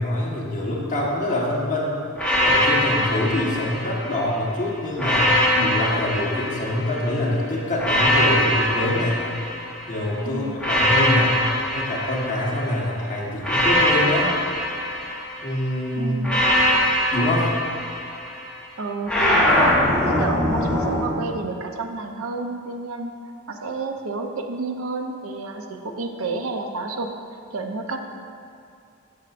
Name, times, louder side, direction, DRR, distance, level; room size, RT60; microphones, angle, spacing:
voice 1, 0.0-2.0 2.4-9.2 9.9-11.4 11.7-14.3 15.4-16.1 17.1-17.5, left 1 dB, 35° left, -5 dB, 1.4 m, -25 dB
sound 1, 2.2-4.3 5.0-7.1 7.8-10.0 10.6-12.8 13.4-15.6 16.2-18.4 19.1-21.1, left 1 dB, 5° left, 1.0 m, -22 dB
voice 2, 16.0-16.4 18.8-23.1 23.5-27.1 27.5-28.1, right 3 dB, 65° right, 4 dB, 0.6 m, -30 dB
12.5 x 6.3 x 2.5 m, 2.4 s
head